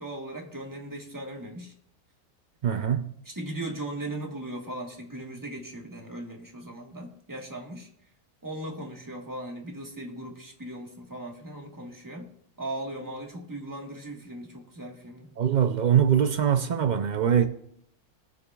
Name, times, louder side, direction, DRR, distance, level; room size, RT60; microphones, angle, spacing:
voice 1, 0.0-1.7 3.2-7.9 8.4-12.3 12.6-15.3, right 1 dB, 15° right, 1.4 m, -38 dB
voice 2, 2.6-3.1 15.4-17.5, right 8 dB, 75° right, 0.4 m, -23 dB
21.0 x 7.0 x 2.3 m
omnidirectional pair, 1.5 m